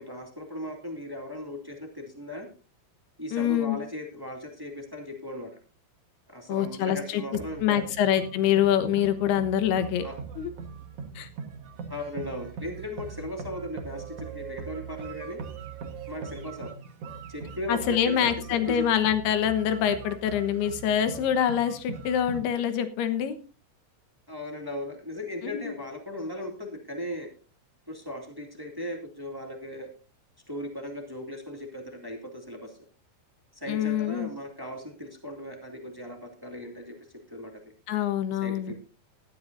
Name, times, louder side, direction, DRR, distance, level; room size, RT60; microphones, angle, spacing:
voice 1, 0.0-2.5 3.2-5.5 6.3-7.9 10.0-10.1 11.9-15.4 16.1-16.8 17.3-18.8 24.3-27.3 27.9-29.9 30.5-32.8 33.5-37.5 38.4-38.8, left 1 dB, 10° right, 3 dB, 1.2 m, -37 dB
voice 2, 3.3-3.8 6.5-7.2 7.6-10.1 10.4-10.5 11.2-11.3 17.7-23.4 25.4-25.7 33.7-34.3 37.9-38.8, left 9 dB, 80° left, 10 dB, 3.2 m, -25 dB
sound 1, 7.3-22.4, right 6 dB, 55° right, 1.7 m, -41 dB
17.5 x 13.0 x 2.6 m, 0.33 s
omnidirectional pair, 4.5 m